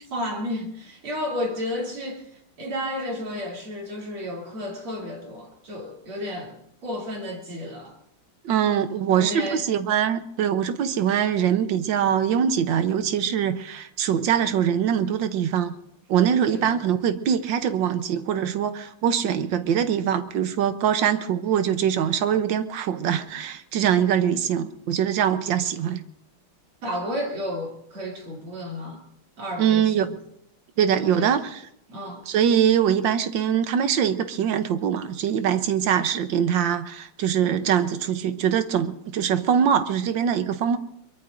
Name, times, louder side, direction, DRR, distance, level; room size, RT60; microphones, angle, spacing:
voice 1, 0.1-2.3 2.6-7.9 9.0-9.7 16.5-16.8 26.8-29.0 29.4-30.2 31.0-31.3 31.9-32.3, left 1 dB, 90° right, 4.0 m, -32 dB
voice 2, 8.4-15.7 16.1-26.0 29.6-30.1 30.8-31.6 32.3-40.8, right 8 dB, 70° right, 1.5 m, -23 dB
23.0 x 22.5 x 2.6 m
omnidirectional pair, 2.3 m